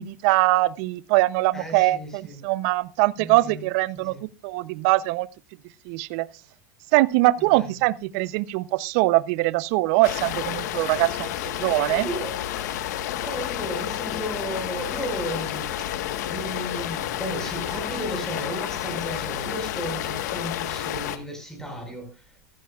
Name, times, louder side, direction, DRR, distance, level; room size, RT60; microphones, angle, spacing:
voice 1, 0.0-5.3 5.9-6.3 6.9-12.1, right 19 dB, 65° right, 0.6 m, -22 dB
voice 2, 1.5-2.4 3.2-3.6 3.9-4.2 7.4-7.7 11.7-12.4 13.2-15.9 16.3-22.4, equal, 5° left, 5.1 m, -34 dB
sound 1, 10.0-21.2, left 11 dB, 80° left, 1.3 m, -30 dB
15.5 x 14.0 x 2.4 m
supercardioid pair, 125°, 9 cm